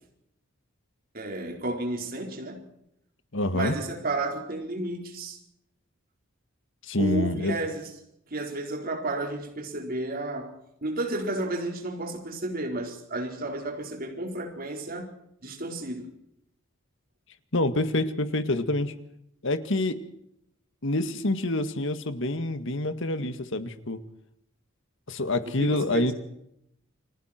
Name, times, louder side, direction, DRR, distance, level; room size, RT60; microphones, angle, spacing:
voice 1, 1.1-2.6 3.5-5.4 7.0-7.9 8.3-15.2 15.4-16.1 25.5-26.1, right 2 dB, 45° right, 4.6 m, -32 dB
voice 2, 3.3-3.8 6.8-7.6 17.5-18.9 19.4-20.0 20.8-24.0 25.1-26.1, left 2 dB, 65° left, 1.9 m, -27 dB
29.5 x 22.0 x 4.5 m
head